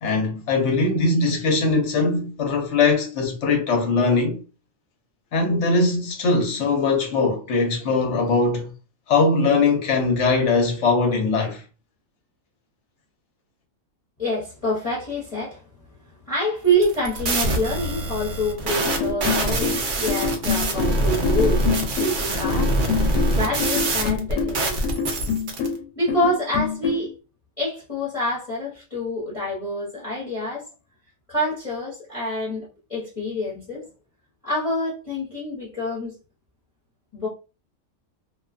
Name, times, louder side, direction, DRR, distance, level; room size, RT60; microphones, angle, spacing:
voice 1, 0.0-4.4 5.3-8.7 9.1-11.6, left 3 dB, 60° left, 0.9 m, -21 dB
voice 2, 14.2-15.6 16.3-24.9 25.9-27.1 27.6-30.7 31.3-33.9 34.4-36.2 37.1-37.3, equal, 25° left, 0.8 m, -27 dB
sound 1, 16.7-25.7, right 1 dB, 60° right, 0.5 m, -24 dB
sound 2, 18.8-27.1, left 6 dB, 85° left, 1.1 m, -26 dB
2.5 x 2.3 x 2.4 m
omnidirectional pair, 1.5 m